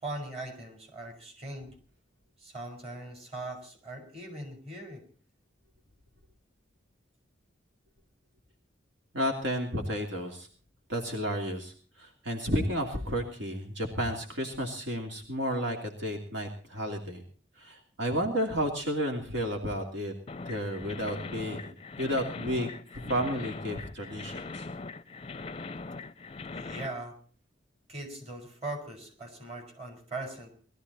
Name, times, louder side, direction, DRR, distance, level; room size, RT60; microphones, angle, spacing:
voice 1, 0.0-1.7 2.4-5.0 26.5-27.2 27.9-30.5, right 2 dB, 35° right, 5 dB, 4.6 m, -40 dB
voice 2, 9.1-10.5 10.9-17.2 17.6-20.1 20.4-24.7, equal, 70° right, 2 dB, 2.9 m, -32 dB
sound 1, 20.3-26.9, left 3 dB, 30° left, 0.6 m, -41 dB
20.5 x 13.5 x 4.2 m, 0.43 s
head